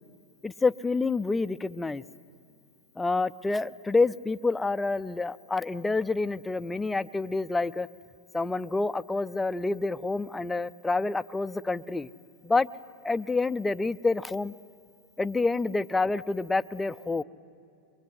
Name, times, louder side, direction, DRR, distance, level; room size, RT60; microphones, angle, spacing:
voice 1, 0.4-2.0 3.0-7.9 8.3-12.1 12.4-12.7 13.0-14.5 15.2-17.2, left 3 dB, 10° left, 12 dB, 0.5 m, -28 dB
23.0 x 23.0 x 9.6 m, 2.5 s
supercardioid pair, 135°, 0 cm